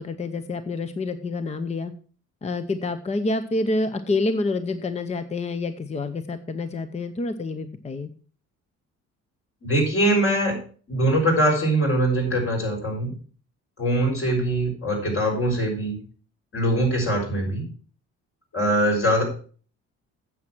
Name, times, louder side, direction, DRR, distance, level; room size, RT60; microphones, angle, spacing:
voice 1, 0.0-1.9 2.4-8.1, left 2 dB, 20° left, 11 dB, 0.7 m, -27 dB
voice 2, 9.6-10.5 10.9-13.1 13.8-16.0 16.5-17.6 18.5-19.2, right 1 dB, 50° left, 0 dB, 6.4 m, -22 dB
9.2 x 7.7 x 6.1 m, 0.42 s
cardioid pair, 110°, 29 cm